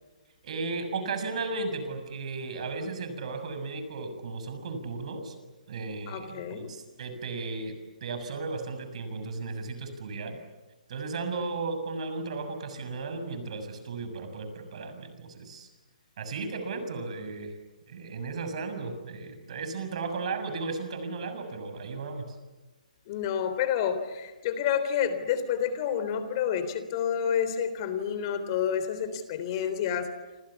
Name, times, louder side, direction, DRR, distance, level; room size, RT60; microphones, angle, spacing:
voice 1, 0.4-5.3 5.7-7.7 8.0-10.4 10.9-15.7 16.2-17.5 17.9-22.4, right 3 dB, 50° right, 8 dB, 6.8 m, -35 dB
voice 2, 6.1-6.7 23.1-30.1, left 8 dB, 35° left, 11 dB, 3.6 m, -29 dB
29.0 x 28.0 x 7.2 m, 1.2 s
figure-of-eight pair, 140°, 4 cm